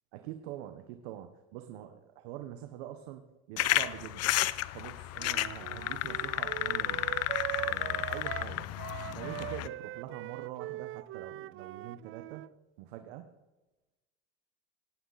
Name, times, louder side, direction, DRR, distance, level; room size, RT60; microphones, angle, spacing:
voice 1, 0.1-4.4 4.7-7.2 7.6-8.7 9.1-12.4 12.8-13.3, right 12 dB, 80° right, 7 dB, 1.4 m, -44 dB
sound 1, 3.6-9.7, left 15 dB, 55° left, 1.0 m, -32 dB
Wind instrument woodwind instrument, 5.2-12.5, right 16 dB, 45° right, 0.5 m, -41 dB
18.0 x 17.5 x 4.3 m, 1.1 s
supercardioid pair, 100°, 30 cm